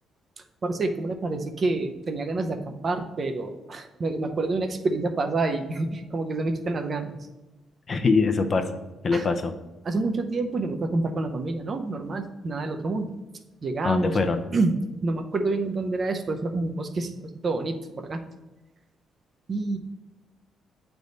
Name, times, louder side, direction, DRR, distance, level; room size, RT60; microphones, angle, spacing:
voice 1, 0.4-7.2 9.1-9.2 9.8-13.1 13.6-14.1 14.5-14.7 15.0-17.1 17.4-18.2 19.5-19.8, right 3 dB, 40° right, 6 dB, 0.6 m, -28 dB
voice 2, 7.9-8.7 9.0-9.5 13.8-14.4, left 4 dB, 40° left, 7 dB, 0.6 m, -23 dB
7.9 x 3.5 x 4.0 m, 1.1 s
cardioid pair, 90°, 0 cm